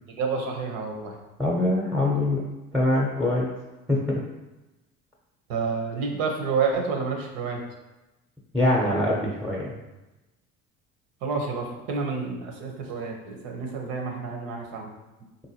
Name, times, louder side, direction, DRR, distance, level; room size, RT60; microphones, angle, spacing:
voice 1, 0.1-1.2 5.5-7.6 11.2-14.9, right 5 dB, 75° right, 2 dB, 0.8 m, -29 dB
voice 2, 1.4-2.5 2.7-3.5 3.9-4.2 8.5-9.7, left 1 dB, ahead, -4 dB, 0.7 m, -23 dB
3.8 x 2.7 x 2.8 m, 1.0 s
supercardioid pair, 75°, 35 cm